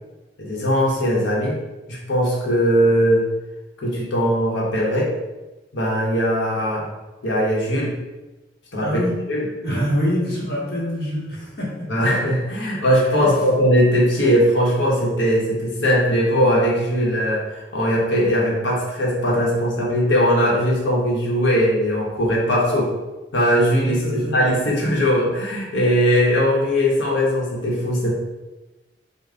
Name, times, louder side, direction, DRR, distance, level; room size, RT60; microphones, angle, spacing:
voice 1, 0.4-1.6 1.9-3.2 3.8-5.1 5.7-6.9 7.2-7.9 8.7-9.0 9.3-9.5 11.9-22.9 23.3-28.1, equal, 85° left, -3 dB, 0.9 m, -19 dB
voice 2, 8.8-9.2 9.6-11.9 13.2-13.3 23.8-24.4, equal, 60° left, -5 dB, 1.0 m, -25 dB
3.6 x 2.1 x 3.4 m, 1.1 s
head